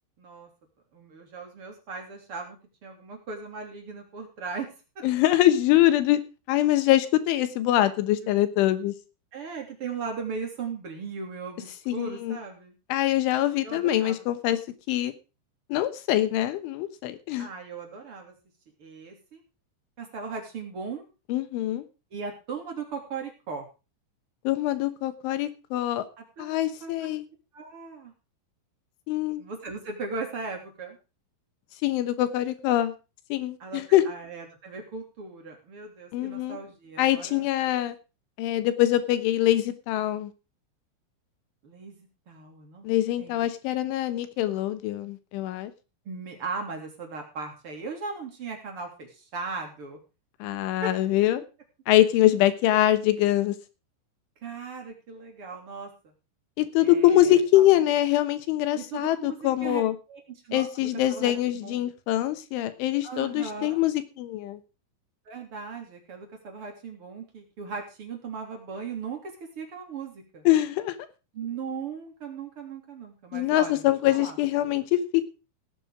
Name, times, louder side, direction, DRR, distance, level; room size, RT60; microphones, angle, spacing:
voice 1, 0.2-0.5 0.9-4.7 8.2-8.4 9.3-12.7 13.6-14.2 17.4-18.3 18.8-19.4 20.0-21.0 22.1-23.7 26.2-26.9 27.5-28.1 29.4-31.0 33.6-37.5 41.6-42.9 43.2-43.5 46.0-50.0 50.8-50.9 52.6-52.8 54.4-55.9 56.8-57.7 58.7-59.8 60.1-61.3 61.6-61.8 63.0-63.8 65.2-70.5 71.3-74.4, right 4 dB, 35° right, 3 dB, 3.3 m, -38 dB
voice 2, 5.0-6.2 6.5-8.9 11.9-12.4 12.9-14.6 14.9-15.1 15.7-17.5 21.3-21.8 24.5-26.0 26.4-27.2 29.1-29.4 31.8-32.9 33.3-34.0 36.1-36.6 37.0-38.0 38.4-40.3 42.8-45.7 50.4-51.4 51.9-53.6 56.6-60.0 60.5-64.6 70.5-71.0 73.3-75.3, left 14 dB, 80° left, 11 dB, 3.6 m, -24 dB
17.0 x 8.9 x 4.9 m, 0.32 s
omnidirectional pair, 5.5 m